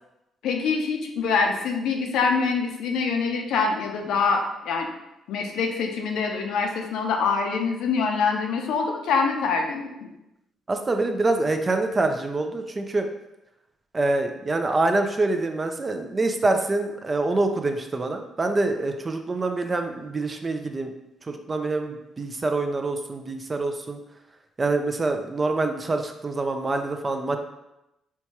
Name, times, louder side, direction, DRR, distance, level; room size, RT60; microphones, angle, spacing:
voice 1, 0.4-4.9 5.3-10.1, left 5 dB, 80° left, 3 dB, 0.5 m, -25 dB
voice 2, 10.7-13.1 13.9-20.9 21.3-24.0 24.6-27.4, right 2 dB, 30° right, 6 dB, 0.4 m, -25 dB
4.5 x 2.3 x 2.8 m, 0.91 s
cardioid pair, 90°, 0 cm